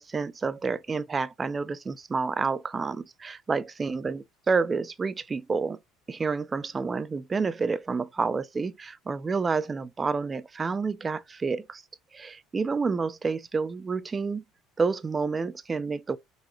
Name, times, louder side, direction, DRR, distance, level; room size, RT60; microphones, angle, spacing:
voice 1, 0.0-5.8 6.1-11.8 12.1-14.4 14.8-16.2, right 4 dB, 25° right, 0.4 m, -29 dB
3.9 x 2.8 x 3.0 m
supercardioid pair, 105°, 0 cm